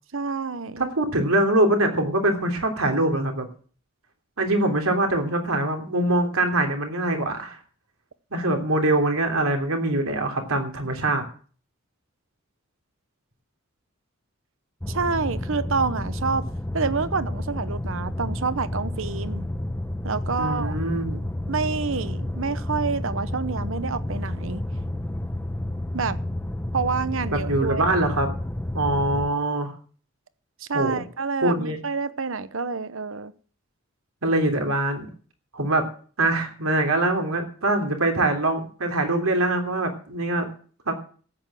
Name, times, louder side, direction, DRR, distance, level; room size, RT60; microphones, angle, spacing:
voice 1, 0.1-0.9 14.9-16.5 16.7-19.5 20.0-20.8 21.5-24.6 25.9-26.2 26.7-28.0 30.7-33.3, right 4 dB, 65° right, 15 dB, 0.9 m, -28 dB
voice 2, 0.8-3.5 4.4-7.6 8.3-11.2 20.4-21.2 27.3-28.3 28.7-29.7 30.7-31.0 31.4-31.8 34.2-35.1 35.5-35.9 36.2-40.5 40.9-41.0, right 2 dB, 80° right, 4 dB, 3.2 m, -23 dB
sound 1, 14.8-29.3, left 1 dB, 10° left, 0.8 m, -30 dB
13.5 x 9.1 x 7.5 m, 0.43 s
head